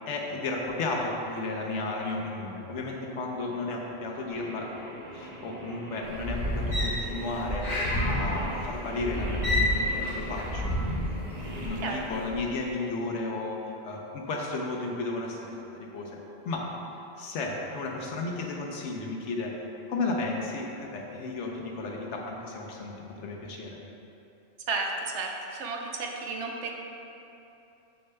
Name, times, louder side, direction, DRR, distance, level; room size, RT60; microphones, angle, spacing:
voice 1, 0.1-4.7 5.1-10.7 11.2-16.2 16.4-16.7 17.2-19.6 19.9-23.8, left 3 dB, 75° left, 0 dB, 1.0 m, -33 dB
Singing, 4.3-12.0, right 1 dB, 40° right, 0.8 m, -41 dB
sound 1, 6.0-11.8 12.2-12.4, left 1 dB, 25° left, 1.6 m, -29 dB
voice 2, 24.7-26.8, right 3 dB, 75° right, 1 dB, 0.9 m, -33 dB
6.9 x 6.4 x 2.2 m, 2.9 s
omnidirectional pair, 1.2 m